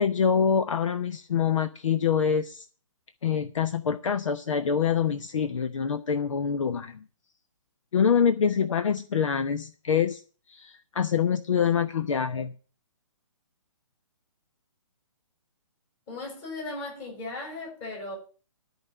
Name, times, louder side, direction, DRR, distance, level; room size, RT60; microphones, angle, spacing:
voice 1, 0.0-2.6 3.2-7.0 7.9-10.2 10.5-12.5, left 7 dB, 70° left, 0.9 m, -25 dB
voice 2, 16.1-18.2, left 2 dB, 25° left, 6.8 m, -37 dB
13.0 x 5.1 x 9.0 m
hypercardioid pair, 165°, 17 cm